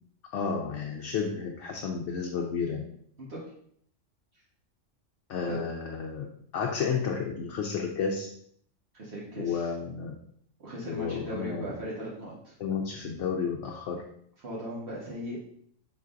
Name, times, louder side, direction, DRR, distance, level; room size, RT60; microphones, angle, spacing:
voice 1, 0.3-2.8 5.3-6.3 6.5-8.3 9.4-10.1 10.8-11.7 12.6-14.0, left 6 dB, 70° left, 1 dB, 0.9 m, -31 dB
voice 2, 8.9-9.7 10.6-12.5 14.4-15.4, equal, 55° right, -6 dB, 1.4 m, -38 dB
5.5 x 3.9 x 2.5 m, 0.64 s
omnidirectional pair, 1.3 m